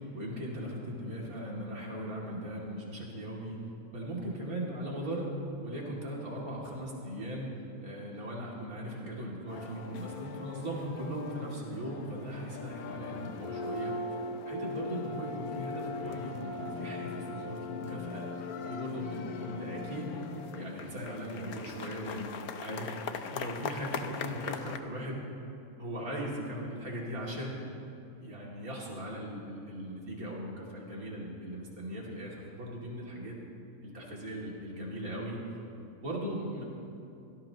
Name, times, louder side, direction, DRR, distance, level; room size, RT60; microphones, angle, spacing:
voice 1, 0.0-3.6 3.9-5.3 5.6-7.5 7.8-14.2 14.4-20.1 20.5-22.9 23.3-25.2 25.8-27.6 28.2-33.4 33.8-35.4 35.8-36.6, equal, 75° right, -4 dB, 3.0 m, -39 dB
sound 1, 9.5-24.8, left 4 dB, 90° left, 1.3 m, -40 dB
24.5 x 17.5 x 2.9 m, 2.7 s
omnidirectional pair, 1.5 m